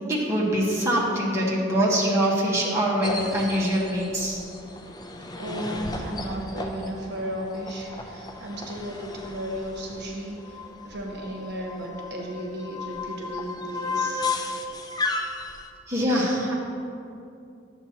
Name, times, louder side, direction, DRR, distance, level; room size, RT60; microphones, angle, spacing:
voice 1, 0.1-4.4 15.9-16.5, equal, 15° right, -5 dB, 1.2 m, -24 dB
sound 1, 3.0-15.7, left 3 dB, 20° left, 0.5 m, -34 dB
voice 2, 5.3-14.2, equal, 60° right, -1 dB, 1.1 m, -34 dB
10.5 x 7.3 x 2.9 m, 2.6 s
head